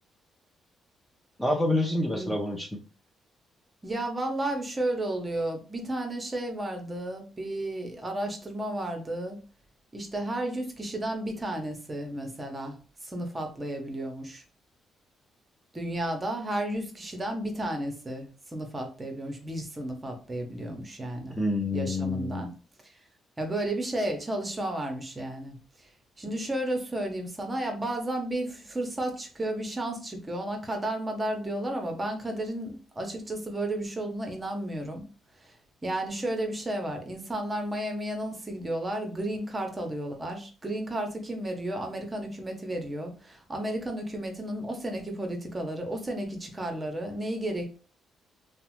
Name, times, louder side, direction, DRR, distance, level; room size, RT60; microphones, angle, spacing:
voice 1, 1.4-2.7 21.4-22.5, left 1 dB, 10° left, 1 dB, 0.5 m, -27 dB
voice 2, 3.8-9.4 9.9-12.8 13.0-14.4 15.7-21.4 21.7-22.5 22.8-23.0 23.4-25.6 26.2-35.1 35.4-35.6 35.8-47.8, right 1 dB, 20° right, 3 dB, 0.8 m, -33 dB
2.8 x 2.1 x 3.0 m, 0.35 s
cardioid pair, 90°, 0 cm